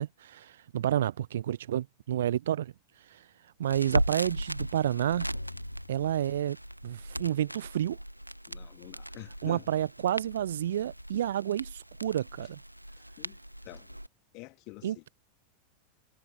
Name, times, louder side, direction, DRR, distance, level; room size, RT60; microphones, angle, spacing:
voice 1, 0.0-2.7 3.0-3.3 3.6-5.3 5.9-6.6 6.8-8.0 9.4-12.6 14.8-15.1, right 11 dB, 60° right, 0.5 m, -30 dB
Crackle, 3.6-14.1, equal, 90° right, 1.6 m, -37 dB
sound 1, 5.3-7.3, left 4 dB, 75° left, 0.8 m, -50 dB
voice 2, 8.5-9.7 13.2-13.4 13.6-14.0 14.3-15.1, left 26 dB, 40° left, 2.1 m, -47 dB
figure-of-eight pair, 90°, 0 cm